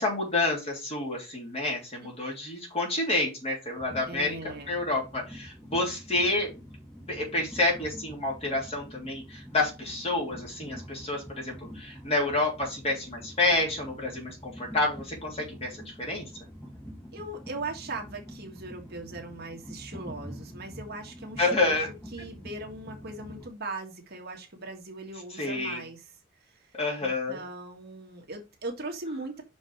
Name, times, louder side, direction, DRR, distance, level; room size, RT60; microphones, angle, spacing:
voice 1, 0.0-6.5 7.1-16.2 21.4-21.9 25.3-25.8 26.7-27.4, left 2 dB, 30° left, -1 dB, 3.2 m, -29 dB
Train, 3.8-23.5, equal, 10° left, 1.9 m, -46 dB
voice 2, 4.1-4.8 17.1-26.1 26.4-26.7 27.0-29.4, right 2 dB, 50° right, 2 dB, 1.7 m, -39 dB
5.9 x 5.3 x 4.8 m, 0.27 s
head